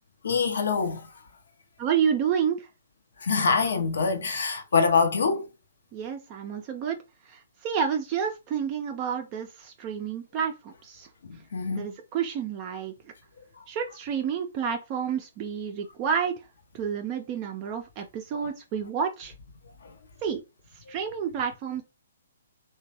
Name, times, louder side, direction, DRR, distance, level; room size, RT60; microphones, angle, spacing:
voice 1, 0.2-1.1 3.2-5.4 11.2-11.9 18.3-18.4, left 5 dB, 70° left, 0.6 m, -25 dB
voice 2, 1.8-2.7 5.9-7.0 7.2-11.1 11.7-12.9 13.7-16.5 16.7-19.3 20.2-20.4 20.7-21.8, right 7 dB, 30° right, 0.4 m, -29 dB
2.9 x 2.2 x 2.8 m
hypercardioid pair, 130°, 0 cm